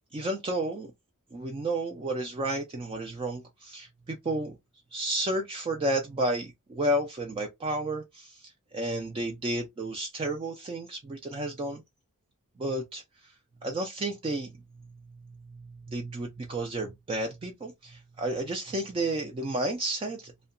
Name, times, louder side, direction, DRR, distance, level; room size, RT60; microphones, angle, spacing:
voice 1, 0.1-0.9 1.3-4.6 4.9-11.8 12.6-13.3 13.6-14.5 15.5-20.3, right 1 dB, 25° right, 0.3 m, -32 dB
2.7 x 2.1 x 2.4 m
head